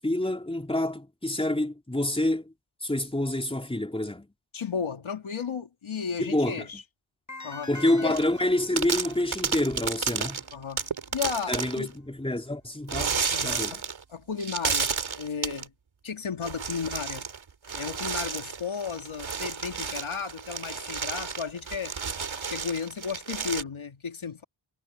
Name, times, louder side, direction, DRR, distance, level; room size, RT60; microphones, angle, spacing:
voice 1, 0.0-2.5 2.8-4.3 6.2-6.7 7.7-10.4 11.5-13.8, left 1 dB, 10° left, 3.6 m, -27 dB
voice 2, 4.5-6.8 7.4-7.7 8.0-8.2 10.5-10.9 11.1-11.9 13.3-13.8 14.1-15.7 16.0-17.3 17.7-22.0 22.5-24.4, left 6 dB, 70° left, 2.8 m, -34 dB
sound 1, 7.3-10.4, left 3 dB, 35° left, 7.0 m, -44 dB
sound 2, 8.1-8.4 8.8-11.9 12.9-14.0 14.4-15.6 16.4-17.4 17.6-23.6, right 6 dB, 65° right, 3.4 m, -32 dB
cardioid pair, 65°, 50 cm